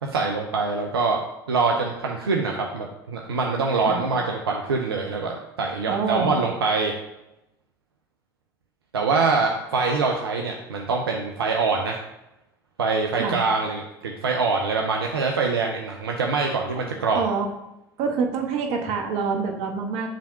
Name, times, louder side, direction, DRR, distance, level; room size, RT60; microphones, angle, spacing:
voice 1, 0.1-6.9 8.9-12.0 12.8-17.2, right 4 dB, 85° right, 1 dB, 0.6 m, -24 dB
voice 2, 5.9-6.4 13.1-13.4 17.1-17.5 18.0-20.1, right 5 dB, 60° right, 2 dB, 1.2 m, -26 dB
5.0 x 3.5 x 5.6 m, 0.89 s
hypercardioid pair, 70°, 12 cm